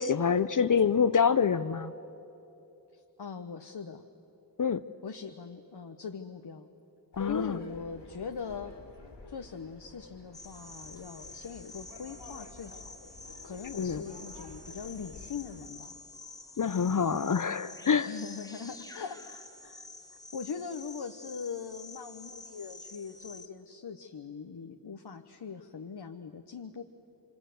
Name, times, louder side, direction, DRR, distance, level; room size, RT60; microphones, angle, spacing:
voice 1, 0.0-1.9 4.6-4.8 7.2-7.6 13.8-14.0 16.6-18.1, left 6 dB, 50° left, 12 dB, 0.7 m, -26 dB
voice 2, 2.9-4.0 5.0-6.7 7.3-8.7 9.3-12.9 13.4-16.0 18.0-19.9 20.3-26.8, left 6 dB, 65° left, 6 dB, 1.1 m, -41 dB
sound 1, 7.1-15.7, left 3 dB, 85° left, 3.3 m, -48 dB
sound 2, 10.3-23.5, left 2 dB, 10° left, 1.6 m, -49 dB
27.0 x 24.5 x 7.9 m, 3.0 s
cardioid pair, 40°, 42 cm